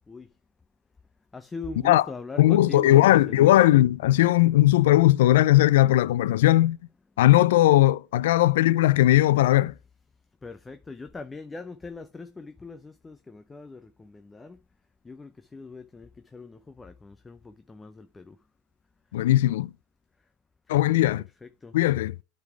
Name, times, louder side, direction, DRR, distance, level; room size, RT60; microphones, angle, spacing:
voice 1, 1.3-3.6 10.4-14.6 15.1-18.3 20.7-21.1 21.4-21.7, left 3 dB, 15° left, 0.6 m, -41 dB
voice 2, 2.4-6.8 7.2-9.7 19.1-19.7 20.7-21.2 21.7-22.1, left 15 dB, 80° left, 0.3 m, -18 dB
9.3 x 4.1 x 4.5 m
supercardioid pair, 115°, 0 cm